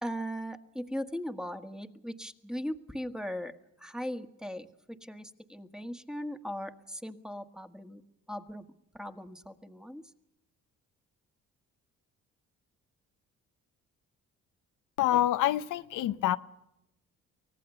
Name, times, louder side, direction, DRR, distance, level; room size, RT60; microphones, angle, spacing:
voice 1, 0.0-3.5 3.8-8.0 8.3-8.7 8.9-10.0, equal, ahead, 1.6 m, -38 dB
voice 2, 15.0-16.4, left 13 dB, 90° left, 0.9 m, -26 dB
24.5 x 18.0 x 6.9 m
cardioid pair, 90°, 30 cm